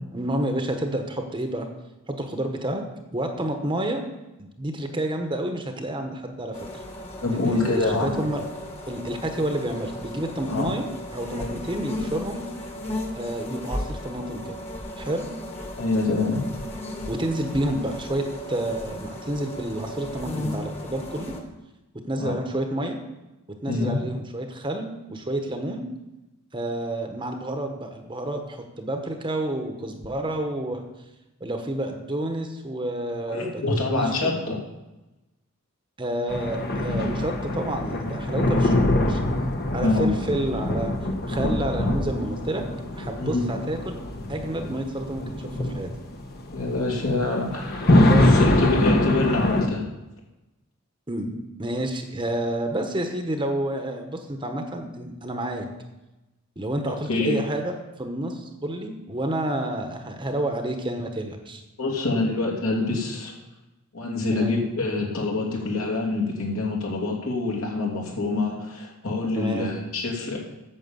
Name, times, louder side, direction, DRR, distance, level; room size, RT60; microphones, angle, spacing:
voice 1, 0.1-1.7 2.1-2.9 3.1-4.0 4.4-6.6 7.4-8.4 8.9-12.5 13.2-14.6 15.0-15.3 17.1-21.4 21.9-23.0 23.6-25.9 26.5-30.8 31.4-34.4 36.0-39.2 39.7-40.9 41.3-42.7 42.9-44.0 44.3-45.9 48.1-48.4 51.1-55.7 56.6-61.6 64.3-64.5 69.4-69.7, right 1 dB, 20° right, 4 dB, 1.0 m, -29 dB
sound 1, 6.5-21.4, left 1 dB, 30° left, 1.6 m, -35 dB
voice 2, 7.2-8.2 10.5-10.7 11.3-11.6 15.8-16.4 22.2-22.4 23.7-24.0 33.3-34.6 39.8-40.1 43.2-43.4 46.5-49.8 56.9-57.4 61.8-63.3 63.9-70.4, left 3 dB, 70° left, -1 dB, 2.8 m, -26 dB
sound 2, 36.3-49.7, left 1 dB, 45° left, 1.1 m, -24 dB
9.2 x 7.3 x 7.2 m, 1.0 s
head